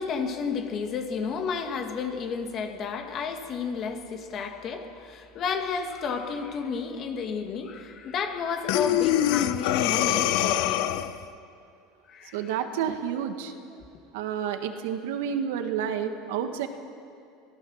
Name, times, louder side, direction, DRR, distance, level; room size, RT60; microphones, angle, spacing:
voice 1, 0.0-10.9 12.1-12.6, left 5 dB, 35° left, 5 dB, 1.9 m, -32 dB
Breathing, 8.7-11.2, left 13 dB, 65° left, 0.8 m, -24 dB
voice 2, 12.3-13.5 14.1-16.7, right 8 dB, 80° right, 7 dB, 1.7 m, -30 dB
23.5 x 17.0 x 6.4 m, 2.4 s
supercardioid pair, 145°, 0 cm